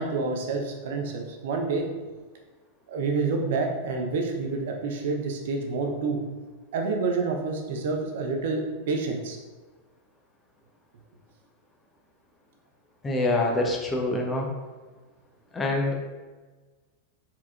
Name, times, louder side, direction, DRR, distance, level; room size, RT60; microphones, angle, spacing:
voice 1, 0.0-1.9 2.9-6.2 6.7-9.4, right 4 dB, 55° right, 2 dB, 0.7 m, -28 dB
voice 2, 13.0-14.5 15.5-15.9, left 2 dB, 15° left, -1 dB, 0.7 m, -25 dB
4.3 x 4.2 x 2.4 m, 1.3 s
figure-of-eight pair, 90°, 0 cm